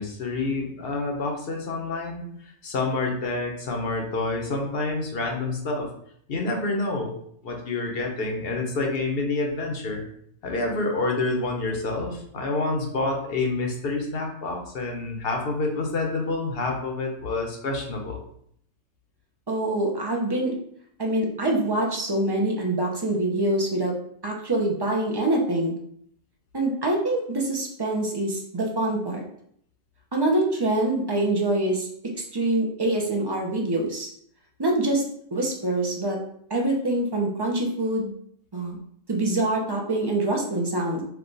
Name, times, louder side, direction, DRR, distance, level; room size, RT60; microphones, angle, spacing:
voice 1, 0.0-2.2 2.6-5.9 6.3-7.1 7.4-10.0 10.4-18.2, left 3 dB, 50° left, 1 dB, 1.0 m, -28 dB
voice 2, 19.5-20.5 21.0-23.9 24.2-25.8 26.5-29.2 30.1-31.9 32.3-34.1 34.6-35.0 35.3-36.2 36.5-38.1 38.5-38.8 39.1-41.0, right 1 dB, 25° right, 0 dB, 0.5 m, -25 dB
4.6 x 2.4 x 3.9 m, 0.66 s
omnidirectional pair, 1.4 m